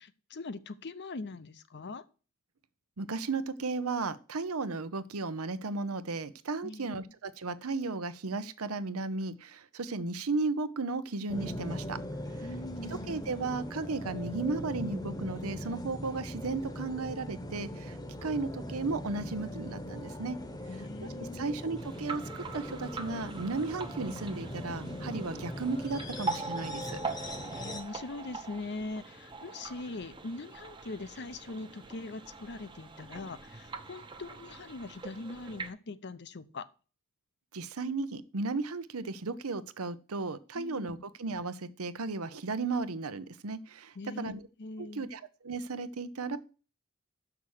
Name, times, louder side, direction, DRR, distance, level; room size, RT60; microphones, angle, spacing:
voice 1, 0.0-2.0 6.6-7.1 12.4-13.3 20.7-21.6 27.5-36.7 40.5-41.0 43.9-44.3 44.6-45.1, left 3 dB, 50° left, 14 dB, 0.7 m, -42 dB
voice 2, 3.0-12.0 13.1-20.4 21.2-27.0 37.5-44.5 44.8-46.4, right 3 dB, 75° right, 14 dB, 0.8 m, -35 dB
sound 1, 11.3-27.8, equal, 15° left, 1.0 m, -40 dB
sound 2, 21.8-35.7, right 4 dB, 20° right, 0.9 m, -42 dB
7.0 x 5.9 x 6.5 m, 0.36 s
head